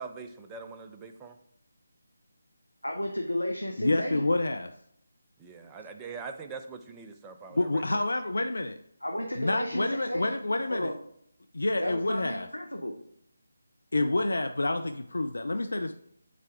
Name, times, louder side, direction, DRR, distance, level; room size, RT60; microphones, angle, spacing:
voice 1, 0.0-1.4 5.4-8.0, right 5 dB, 10° right, 5 dB, 0.5 m, -43 dB
voice 2, 2.8-4.2 9.0-10.3 10.7-11.0 11.8-13.0, equal, 85° left, 2 dB, 0.9 m, -33 dB
voice 3, 3.8-4.7 7.5-8.8 9.4-10.9 11.5-12.5 13.9-15.9, left 2 dB, 65° left, 7 dB, 0.5 m, -28 dB
7.3 x 4.7 x 3.6 m, 0.72 s
figure-of-eight pair, 155°, 0 cm